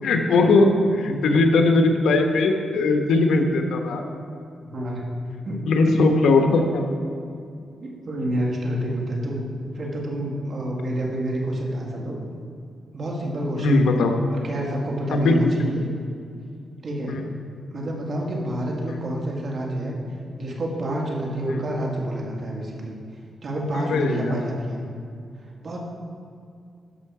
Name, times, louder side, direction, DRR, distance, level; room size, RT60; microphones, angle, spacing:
voice 1, 0.0-4.0 5.7-6.8 13.5-14.1 15.1-15.8 17.1-17.3 18.9-19.0 21.5-21.6 23.7-24.5, left 2 dB, 85° left, 4 dB, 1.0 m, -20 dB
voice 2, 4.7-5.0 5.5-5.9 7.8-9.5 9.7-12.2 12.9-13.9 14.3-15.8 16.8-17.2 17.7-20.0 20.4-23.0 23.4-24.8 25.6-25.8, right 1 dB, 45° right, -2 dB, 2.0 m, -28 dB
12.5 x 5.6 x 4.8 m, 2.4 s
cardioid pair, 100°, 0 cm